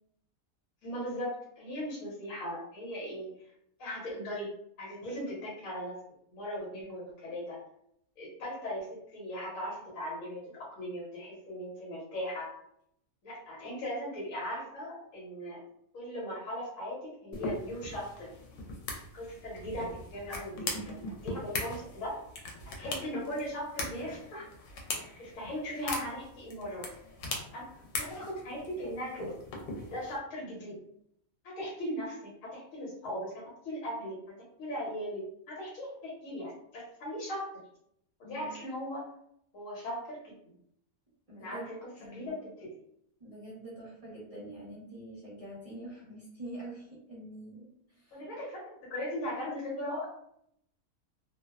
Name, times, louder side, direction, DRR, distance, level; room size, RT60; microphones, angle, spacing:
voice 1, 0.8-3.3 3.8-4.5 4.8-5.9 6.3-7.6 8.2-12.5 13.2-15.6 15.9-18.3 19.1-21.0 21.2-22.2 22.7-24.5 25.2-26.9 27.5-27.6 28.0-29.3 29.8-30.8 31.4-37.5 38.2-39.0 39.5-40.5 41.3-42.7 48.1-50.1, equal, 65° left, -4 dB, 1.1 m, -38 dB
sound 1, 17.3-30.2, left 2 dB, 90° left, 1.1 m, -40 dB
voice 2, 41.3-41.7 42.0-42.3 43.2-48.3, right 1 dB, 35° right, -7 dB, 0.6 m, -45 dB
2.6 x 2.0 x 2.3 m, 0.73 s
omnidirectional pair, 1.6 m